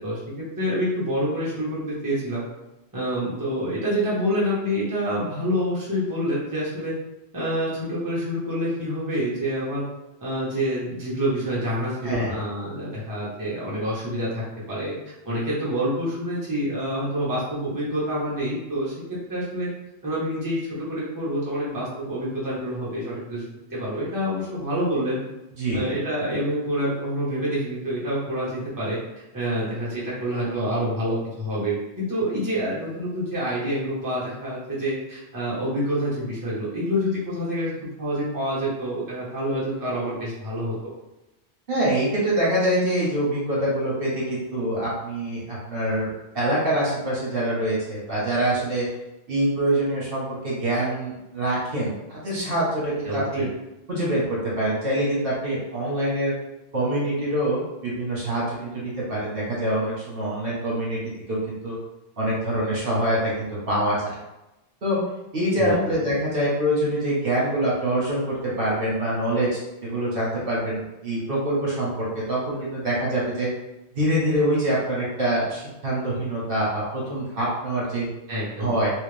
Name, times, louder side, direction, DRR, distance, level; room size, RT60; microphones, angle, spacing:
voice 1, 0.0-2.4 2.9-6.9 7.3-9.8 10.2-14.9 15.2-18.9 19.3-19.7 20.0-23.4 23.7-25.2 25.7-29.0 29.3-37.7 38.0-40.7 53.0-53.5 65.6-65.8 78.3-78.7, equal, 20° right, -8 dB, 1.1 m, -27 dB
voice 2, 12.0-12.3 25.6-25.8 41.7-46.1 46.3-48.9 49.3-53.5 53.9-56.3 56.7-61.8 62.2-64.2 64.8-65.0 65.3-73.5 73.9-78.1 78.6-78.9, right 1 dB, 55° right, -7 dB, 1.4 m, -25 dB
3.2 x 3.1 x 3.3 m, 0.96 s
omnidirectional pair, 1.2 m